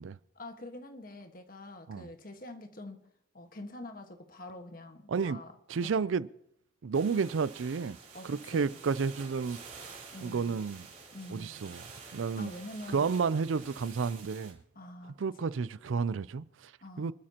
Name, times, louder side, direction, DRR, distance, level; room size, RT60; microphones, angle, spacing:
voice 1, 0.3-3.0 3.3-6.1 8.1-8.8 10.1-10.6 11.1-11.7 12.4-13.0 14.7-15.6 16.8-17.1, left 1 dB, 45° left, 1.5 m, -46 dB
voice 2, 5.1-5.4 5.7-6.3 6.8-8.0 8.2-9.6 10.2-10.9 11.3-11.8 12.1-12.5 12.9-14.6 15.2-16.7 17.0-17.1, right 5 dB, 85° right, 0.4 m, -31 dB
sound 1, 6.9-14.5, right 5 dB, 40° right, 4.2 m, -49 dB
26.0 x 12.5 x 2.9 m
head